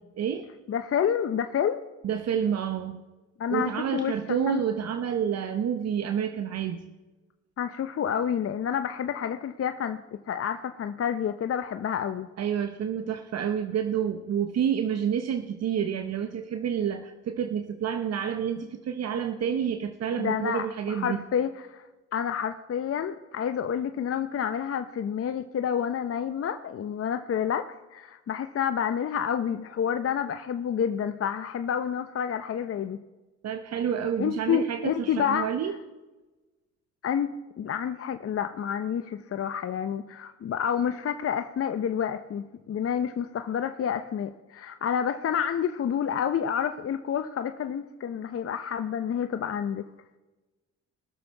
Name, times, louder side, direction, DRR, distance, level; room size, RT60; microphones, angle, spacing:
voice 1, 0.2-0.5 2.0-3.0 3.5-6.9 12.4-21.3 33.4-35.8, right 8 dB, 55° right, 8 dB, 0.9 m, -29 dB
voice 2, 0.7-1.8 3.4-4.6 7.6-10.0 10.3-12.3 20.2-21.8 22.1-33.0 34.2-35.5 37.0-49.9, left 8 dB, 50° left, 9 dB, 0.7 m, -29 dB
21.0 x 7.0 x 4.5 m, 1.2 s
supercardioid pair, 70°, 30 cm